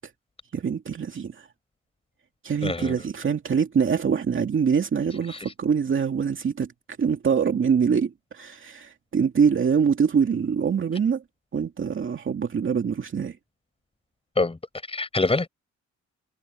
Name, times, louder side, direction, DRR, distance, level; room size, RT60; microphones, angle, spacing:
voice 1, 0.5-1.5 2.4-6.7 7.0-11.2 11.5-13.4, right 6 dB, 40° right, 2.4 m, -24 dB
voice 2, 2.6-2.9 5.3-5.5 14.4-14.6 14.9-15.5, left 3 dB, 20° left, 5.5 m, -25 dB
cardioid pair, 90°, 30 cm